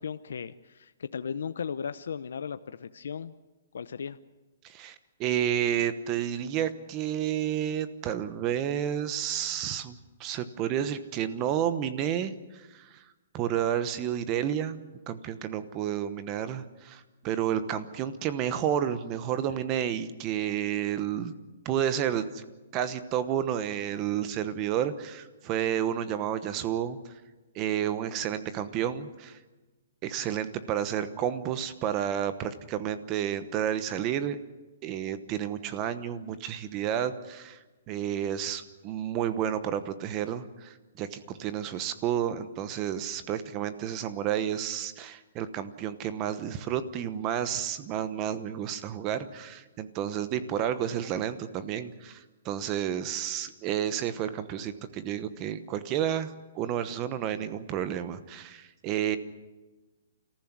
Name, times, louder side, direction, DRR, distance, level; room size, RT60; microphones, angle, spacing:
voice 1, 0.0-3.3 3.7-4.2, left 6 dB, 75° left, 11 dB, 0.8 m, -36 dB
voice 2, 4.6-4.9 5.2-13.0 13.3-21.3 21.6-22.4 22.7-27.0 27.5-29.4 30.0-34.4 34.8-37.6 37.9-59.2, right 10 dB, 20° right, 12 dB, 1.0 m, -31 dB
29.0 x 14.5 x 9.6 m, 1.2 s
hypercardioid pair, 170°, 0 cm